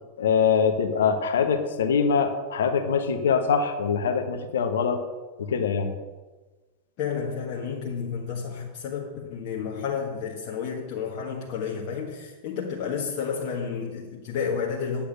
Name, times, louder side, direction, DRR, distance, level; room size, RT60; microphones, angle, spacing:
voice 1, 0.2-5.0 5.4-5.9, left 6 dB, 60° left, 7 dB, 1.3 m, -23 dB
voice 2, 7.0-15.0, left 6 dB, 45° left, -3 dB, 1.7 m, -31 dB
10.0 x 8.8 x 6.4 m, 1.3 s
figure-of-eight pair, 90°, 0 cm